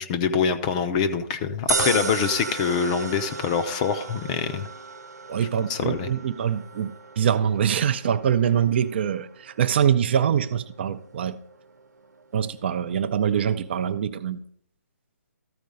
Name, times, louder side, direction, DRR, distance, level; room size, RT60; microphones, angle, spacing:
voice 1, 0.0-4.7 5.7-6.1, left 6 dB, 25° left, 0.6 m, -25 dB
sound 1, 1.7-14.0, right 4 dB, 85° right, 0.7 m, -36 dB
voice 2, 5.3-11.4 12.3-14.4, right 8 dB, 40° right, 0.5 m, -24 dB
13.5 x 4.6 x 5.3 m
hypercardioid pair, 150°, 9 cm